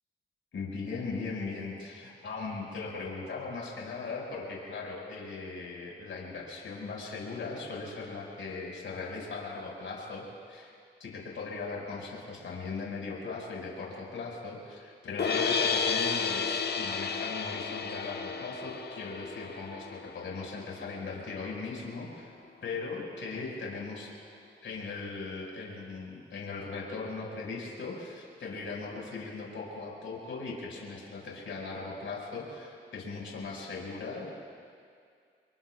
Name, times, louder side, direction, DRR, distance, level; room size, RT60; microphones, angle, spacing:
voice 1, 0.5-10.7 11.0-19.9 20.1-22.3 22.6-24.1 24.6-34.3, left 4 dB, 70° left, -3 dB, 5.3 m, -39 dB
sound 1, 15.2-21.3, left 5 dB, 55° left, 1.3 m, -32 dB
27.0 x 22.5 x 2.4 m, 2.2 s
cardioid pair, 55°, 21 cm